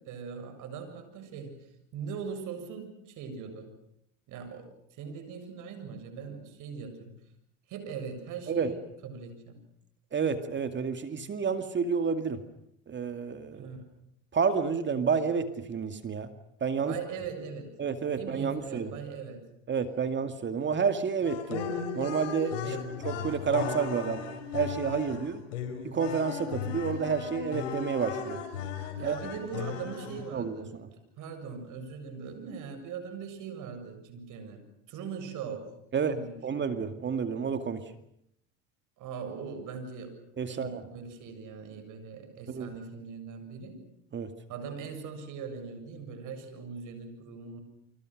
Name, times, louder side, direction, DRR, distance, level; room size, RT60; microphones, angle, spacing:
voice 1, 0.0-3.8 4.3-7.2 7.7-9.6 13.5-13.8 16.8-17.8 18.1-19.5 22.6-23.1 29.0-34.6 34.9-36.8 39.0-40.2 40.5-43.9 44.5-47.6, right 6 dB, 55° right, 8 dB, 7.6 m, -41 dB
voice 2, 10.1-12.4 12.9-13.7 14.3-16.3 16.6-17.0 17.8-18.9 19.7-21.7 21.9-22.7 23.0-24.2 24.5-25.4 25.8-28.4 29.0-29.2 30.3-30.6 35.9-36.1 36.4-37.8 40.4-40.8 42.5-42.7 44.1-44.3, right 6 dB, 30° right, 9 dB, 2.2 m, -30 dB
sound 1, 21.2-30.4, left 7 dB, 85° left, 5.0 m, -36 dB
29.5 x 25.5 x 6.5 m, 0.72 s
supercardioid pair, 100°, 36 cm